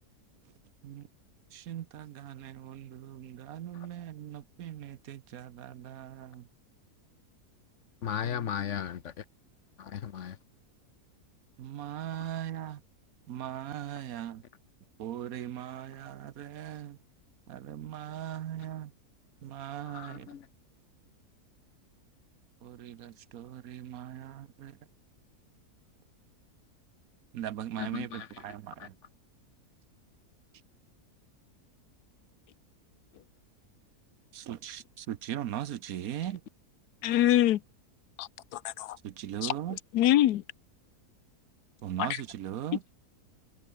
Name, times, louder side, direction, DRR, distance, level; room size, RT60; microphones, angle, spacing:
voice 1, 1.5-6.5 8.2-8.5 11.6-12.8 13.3-14.4 15.0-17.0 17.5-18.9 19.4-20.3 22.6-24.8 27.3-28.9 34.3-36.4 39.0-39.8 41.8-42.8, right 11 dB, 70° right, 1.2 m, -39 dB
voice 2, 8.0-9.2 9.8-10.4 19.9-20.5 27.8-28.3 28.8-28.9, left 8 dB, 55° left, 1.1 m, -36 dB
voice 3, 37.0-37.6 38.2-39.0 39.4-39.5 39.9-40.4, left 13 dB, 85° left, 1.3 m, -24 dB
omnidirectional pair, 1.6 m